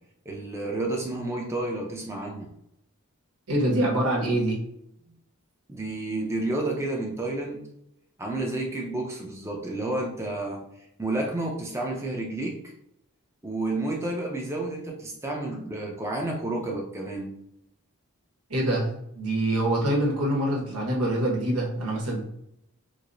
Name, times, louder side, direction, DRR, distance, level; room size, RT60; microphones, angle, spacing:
voice 1, 0.3-2.5 5.7-7.6 8.2-10.6 11.0-12.6 13.4-17.3, right 2 dB, 10° right, -1 dB, 0.5 m, -30 dB
voice 2, 3.5-4.6 18.5-22.2, right 1 dB, 90° right, -2 dB, 1.2 m, -25 dB
4.7 x 2.0 x 2.6 m, 0.78 s
head